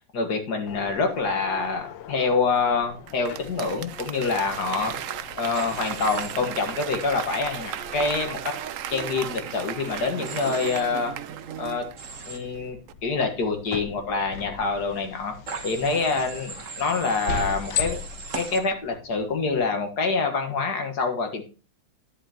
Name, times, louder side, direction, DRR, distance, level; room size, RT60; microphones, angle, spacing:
voice 1, 0.1-5.0 5.4-8.5 8.9-11.1 11.6-11.8 12.3-15.3 15.6-18.0 18.4-21.4, left 4 dB, 55° left, 5 dB, 2.1 m, -26 dB
sound 1, 0.7-19.6, left 8 dB, 75° left, 1.5 m, -39 dB
Applause / Crowd, 3.1-12.5 12.9-13.0, right 10 dB, 85° right, 0.7 m, -35 dB
Human voice / Train, 5.5-6.3 10.2-10.8 12.0-12.4 15.5-18.6, right 4 dB, 45° right, 1.6 m, -38 dB
11.0 x 7.9 x 2.9 m, 0.34 s
omnidirectional pair, 2.1 m